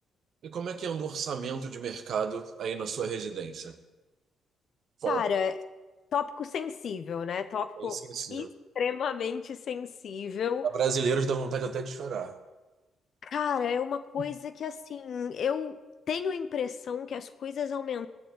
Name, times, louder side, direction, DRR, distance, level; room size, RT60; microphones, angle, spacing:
voice 1, 0.4-3.8 5.0-5.2 7.8-8.5 10.6-12.3 14.2-14.3, right 6 dB, 65° right, 7 dB, 1.5 m, -31 dB
voice 2, 5.1-5.5 6.1-8.0 8.3-8.5 8.7-10.7 13.2-15.8 16.1-18.1, left 7 dB, 60° left, 11 dB, 1.1 m, -32 dB
18.0 x 7.0 x 9.3 m, 1.2 s
hypercardioid pair, 50°, 0 cm